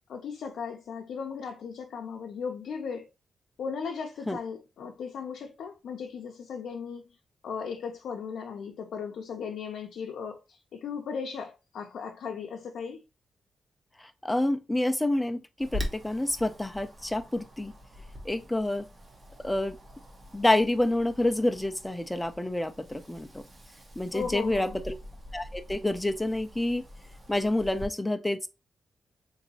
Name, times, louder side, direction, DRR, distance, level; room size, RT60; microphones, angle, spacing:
voice 1, 0.1-3.1 3.6-7.1 7.4-13.0 24.1-24.8, left 6 dB, 85° left, 0.5 m, -37 dB
voice 2, 14.0-17.7 18.2-18.9 19.4-19.8 20.3-23.4 24.0-25.0 25.3-26.9 27.3-28.5, left 1 dB, 10° left, 0.4 m, -28 dB
Wind, 15.6-27.9, left 1 dB, 25° right, 0.7 m, -43 dB
3.8 x 2.6 x 2.8 m
wide cardioid pair, 140°, 0 cm